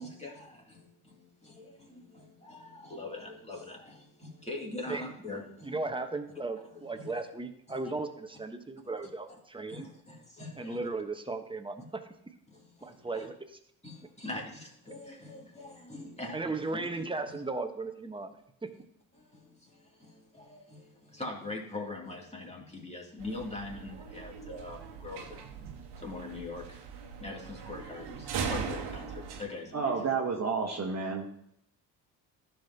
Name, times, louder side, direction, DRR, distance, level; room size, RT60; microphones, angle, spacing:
voice 1, 0.0-5.7 6.7-7.1 7.8-7.9 9.7-10.8 12.5-13.3 13.8-16.9 19.1-25.4 26.0-26.8 27.2-30.1, left 2 dB, 15° left, -2 dB, 2.7 m, -43 dB
voice 2, 5.6-9.9 10.6-12.0 12.8-13.6 16.3-18.3 18.6-18.7, right 3 dB, 10° right, 6 dB, 1.1 m, -36 dB
sound 1, 23.2-29.4, right 6 dB, 60° right, 1.4 m, -40 dB
voice 3, 29.7-31.3, right 5 dB, 35° right, 0 dB, 1.4 m, -30 dB
14.5 x 5.8 x 2.9 m, 0.73 s
hypercardioid pair, 50°, 45 cm